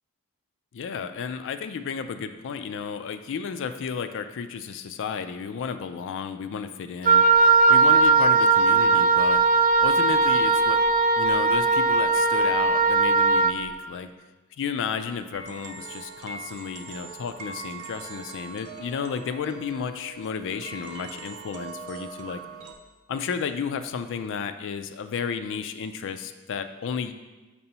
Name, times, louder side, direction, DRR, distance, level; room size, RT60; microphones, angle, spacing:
voice 1, 0.7-9.4 9.8-10.8 11.2-14.1 14.6-22.4 23.1-27.1, left 6 dB, 55° left, 9 dB, 0.3 m, -32 dB
Wind instrument woodwind instrument, 7.1-13.6, right 3 dB, 40° right, 0.3 m, -19 dB
sound 1, 15.3-22.7, right 4 dB, 70° right, 0.7 m, -41 dB
6.7 x 2.9 x 5.4 m, 1.2 s
head